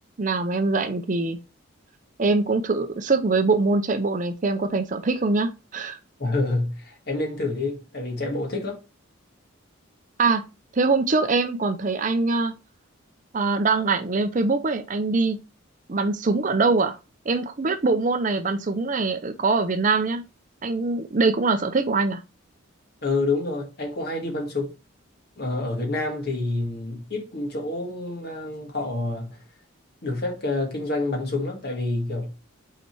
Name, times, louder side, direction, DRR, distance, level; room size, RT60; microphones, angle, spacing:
voice 1, 0.2-1.4 2.2-6.0 10.2-10.4 10.7-12.5 13.3-15.4 15.9-17.0 17.3-20.2 20.6-22.2, right 3 dB, 40° right, 0.5 m, -23 dB
voice 2, 6.2-8.8 23.0-24.7 25.4-29.4 30.0-32.3, left 2 dB, 50° left, 1.8 m, -28 dB
5.8 x 4.2 x 4.5 m
head